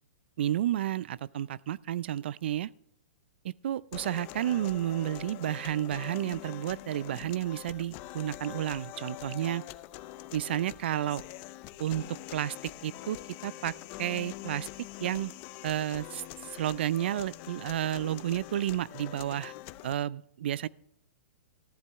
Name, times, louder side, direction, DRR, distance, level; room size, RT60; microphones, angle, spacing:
voice 1, 0.4-2.7 3.4-9.6 10.3-11.2 11.8-13.2 13.4-13.7 14.0-14.7 15.0-15.3 15.6-19.5 19.8-20.7, right 12 dB, 60° right, 22 dB, 0.4 m, -31 dB
sound 1, 3.9-19.9, left 16 dB, 30° left, 0.5 m, -44 dB
13.5 x 10.5 x 3.5 m, 0.76 s
hypercardioid pair, 160°, 7 cm